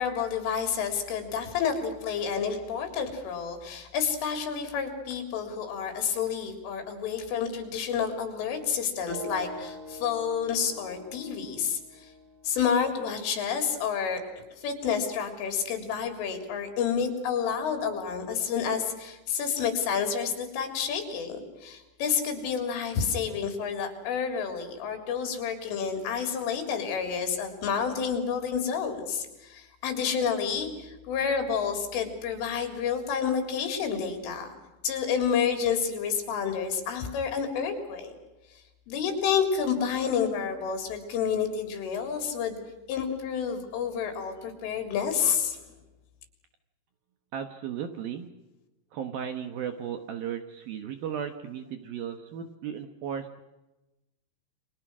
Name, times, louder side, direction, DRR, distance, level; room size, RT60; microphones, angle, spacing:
voice 1, 0.0-12.1 12.5-34.5 34.8-38.1 38.9-42.6 42.9-45.6, left 7 dB, 80° left, 6 dB, 6.0 m, -29 dB
sound 1, 9.1-13.0, right 1 dB, 90° right, 10.5 m, -44 dB
voice 2, 47.3-48.3 48.9-53.3, right 8 dB, 65° right, 8 dB, 2.5 m, -35 dB
30.0 x 24.0 x 6.2 m, 1.0 s
omnidirectional pair, 5.6 m